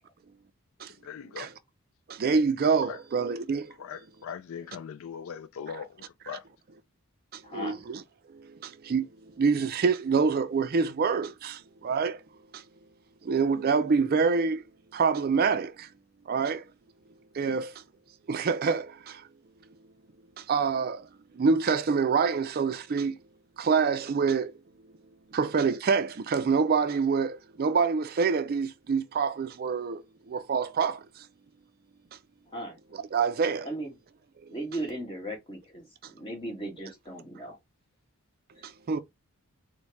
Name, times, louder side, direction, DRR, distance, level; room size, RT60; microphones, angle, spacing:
voice 1, 1.0-1.5 2.9-3.0 3.8-6.4, left 7 dB, 65° left, 0.4 m, -40 dB
voice 2, 2.1-3.7 7.3-8.0 8.3-9.1 9.4-12.2 12.5-12.6 13.2-14.6 14.9-15.9 16.3-16.6 17.3-17.7 18.3-19.3 20.4-21.1 21.3-23.2 23.6-24.5 25.3-30.0 30.3-31.3 32.9-33.7 34.4-34.5 38.6-39.0, right 5 dB, 45° right, 0.4 m, -26 dB
voice 3, 7.4-7.8 17.4-17.5 32.5-32.8 33.6-33.9 34.5-37.6 38.5-38.6, right 1 dB, 25° left, 1.7 m, -37 dB
4.4 x 2.1 x 4.5 m
head